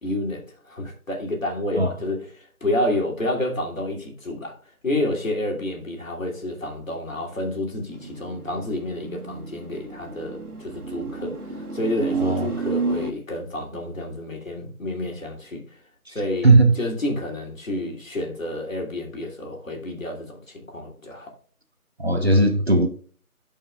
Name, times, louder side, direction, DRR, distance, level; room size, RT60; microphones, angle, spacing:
voice 1, 0.0-4.6 4.8-15.6 16.1-21.3, left 1 dB, 60° left, 2.9 m, -29 dB
sound 1, 7.9-13.1, right 4 dB, 90° right, 1.7 m, -31 dB
voice 2, 22.0-22.9, right 2 dB, 45° right, 1.0 m, -17 dB
12.5 x 5.5 x 2.3 m
figure-of-eight pair, 180°, 44 cm